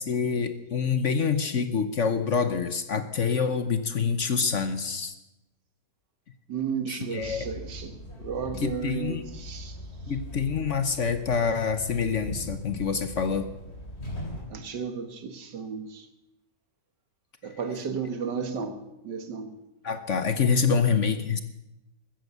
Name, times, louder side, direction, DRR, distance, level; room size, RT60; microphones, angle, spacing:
voice 1, 0.0-5.1 6.9-7.5 8.6-9.2 10.1-13.5 19.8-21.4, left 6 dB, 50° left, 10 dB, 1.1 m, -26 dB
voice 2, 6.5-9.8 14.5-16.1 17.4-18.8 19.0-19.5, right 6 dB, 80° right, 8 dB, 2.1 m, -33 dB
sound 1, 7.2-14.4, equal, 35° left, 3.7 m, -40 dB
14.5 x 14.5 x 6.8 m, 0.93 s
omnidirectional pair, 1.9 m